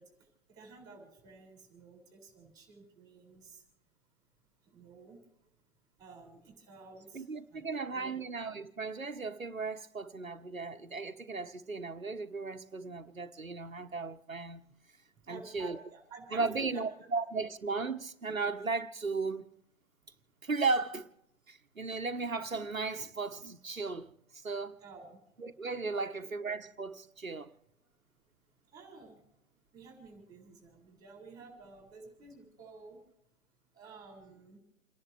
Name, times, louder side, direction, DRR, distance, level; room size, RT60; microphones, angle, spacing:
voice 1, 0.0-3.6 4.6-5.2 6.0-8.2 15.2-17.1 17.3-17.5 24.8-25.2 25.9-26.1 28.7-29.2 29.7-33.0 33.7-34.6, right 4 dB, 10° right, 6.4 m, -51 dB
voice 2, 7.1-14.6 15.3-15.8 16.3-19.5 20.4-21.1 21.5-24.1 24.4-24.8 25.4-27.5, right 4 dB, 90° right, 1.2 m, -36 dB
30.0 x 11.0 x 3.4 m
figure-of-eight pair, 130°, 39 cm